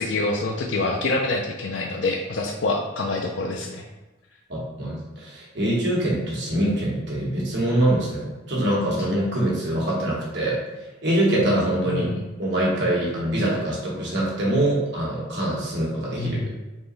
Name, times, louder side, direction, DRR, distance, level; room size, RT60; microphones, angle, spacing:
voice 1, 0.0-3.9 11.9-12.2 16.2-16.5, left 2 dB, 65° left, 1 dB, 0.4 m, -26 dB
voice 2, 4.5-10.6 11.0-12.1 12.4-16.5, right 1 dB, 60° right, -4 dB, 1.1 m, -24 dB
3.7 x 3.0 x 3.9 m, 1.1 s
head